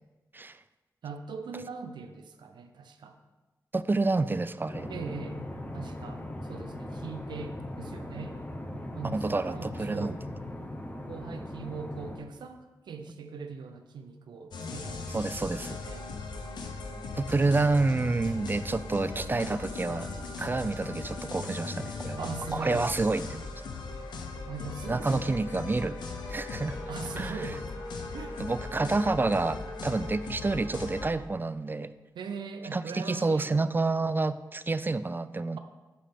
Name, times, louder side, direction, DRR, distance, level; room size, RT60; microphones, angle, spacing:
voice 1, 1.0-3.2 4.9-5.4 5.7-8.4 8.9-10.2 11.1-16.1 17.3-17.8 22.2-22.9 24.5-25.7 26.9-27.6 28.1-28.4 32.2-33.5, right 5 dB, 85° right, 7 dB, 0.6 m, -41 dB
voice 2, 3.7-4.9 9.1-10.2 15.1-15.8 17.2-20.1 20.4-23.5 24.9-26.0 26.3-26.8 27.2-27.6 28.4-31.9 32.7-35.6, right 3 dB, 30° right, 14 dB, 0.4 m, -29 dB
sound 1, 4.7-12.2, left 1 dB, 20° left, 1.0 m, -39 dB
sound 2, 14.5-31.1, left 3 dB, 85° left, 0.8 m, -38 dB
Bowed string instrument, 25.9-30.4, left 1 dB, 40° left, 2.6 m, -49 dB
8.3 x 3.3 x 5.8 m, 1.2 s
cardioid pair, 50°, 7 cm